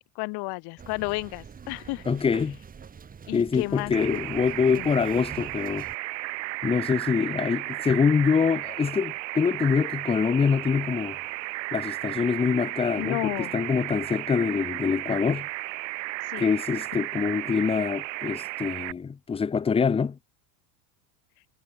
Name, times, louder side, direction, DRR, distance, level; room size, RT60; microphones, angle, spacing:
voice 1, 0.1-2.1 3.3-3.9 4.7-4.9 13.0-13.6 16.3-16.5, left 25 dB, 50° left, 6.4 m, -32 dB
sound 1, 0.8-6.0, right 6 dB, 15° right, 4.1 m, -45 dB
voice 2, 2.1-2.6 3.3-5.9 6.6-11.2 11.7-15.5 16.4-20.2, left 6 dB, 10° left, 1.2 m, -25 dB
sound 2, 3.9-18.9, right 21 dB, 85° right, 5.0 m, -34 dB
cardioid pair, 170°, 49 cm